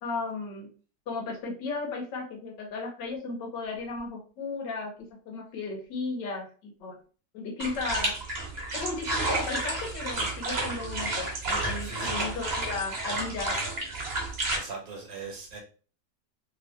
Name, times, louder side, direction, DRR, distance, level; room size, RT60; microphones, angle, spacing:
voice 1, 0.0-0.7 1.1-4.9 5.2-7.0 7.3-8.1 8.7-13.6, left 4 dB, 80° left, 1 dB, 1.6 m, -35 dB
sound 1, 7.6-14.6, right 2 dB, 40° right, 1.1 m, -31 dB
voice 2, 11.8-12.2 14.5-15.6, right 4 dB, 60° right, 0 dB, 1.4 m, -40 dB
3.4 x 2.8 x 3.2 m, 0.39 s
omnidirectional pair, 1.9 m